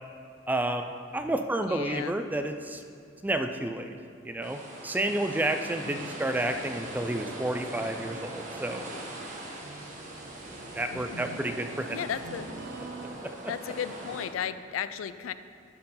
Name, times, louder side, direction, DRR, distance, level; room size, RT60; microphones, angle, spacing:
voice 1, 0.5-0.9 1.1-2.8 3.2-3.9 4.2-8.9 10.7-12.0, right 1 dB, 10° right, 7 dB, 0.3 m, -30 dB
voice 2, 1.6-2.1 5.7-6.2 10.9-11.4 11.9-12.5 13.5-15.3, left 8 dB, 80° left, 13 dB, 0.3 m, -35 dB
sound 1, 4.4-14.3, right 1 dB, 40° right, 1.2 m, -41 dB
sound 2, 7.0-13.1, right 3 dB, 60° right, 0.6 m, -46 dB
11.5 x 4.5 x 5.6 m, 2.3 s
head